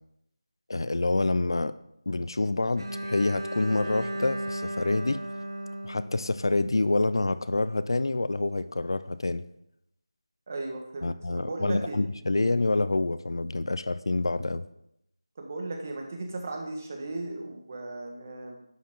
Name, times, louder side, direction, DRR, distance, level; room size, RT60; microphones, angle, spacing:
voice 1, 0.7-1.7 2.1-5.2 5.8-9.4 11.0-14.6, left 2 dB, 60° left, 14 dB, 0.5 m, -27 dB
Bowed string instrument, 2.8-6.8, right 1 dB, 65° right, 2.1 m, -35 dB
voice 2, 10.5-12.0 15.4-18.6, right 2 dB, 30° right, 2 dB, 1.4 m, -36 dB
11.0 x 7.4 x 3.7 m, 0.79 s
figure-of-eight pair, 170°, 3 cm